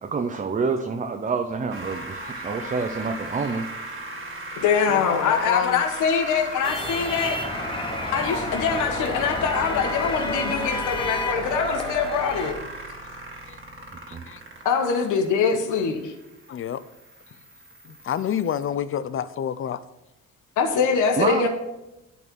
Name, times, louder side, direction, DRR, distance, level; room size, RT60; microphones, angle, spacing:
voice 1, 0.0-3.6 14.1-14.2 21.2-21.5, right 4 dB, 25° right, 6 dB, 0.7 m, -27 dB
sound 1, 1.7-18.7, right 2 dB, 40° right, 2.0 m, -37 dB
voice 2, 1.9-2.3 2.6-2.7 4.9-5.8 8.0-8.1 13.5-13.6 14.1-14.4 16.5-16.8 18.0-19.8, left 9 dB, 45° left, 15 dB, 0.5 m, -29 dB
voice 3, 4.6-7.4 8.1-12.6 14.6-16.1 20.6-21.5, left 6 dB, 90° left, 4 dB, 1.2 m, -23 dB
sound 2, 6.6-12.5, left 2 dB, 15° left, 1.1 m, -30 dB
11.0 x 4.1 x 6.1 m, 0.97 s
cardioid pair, 90°, 30 cm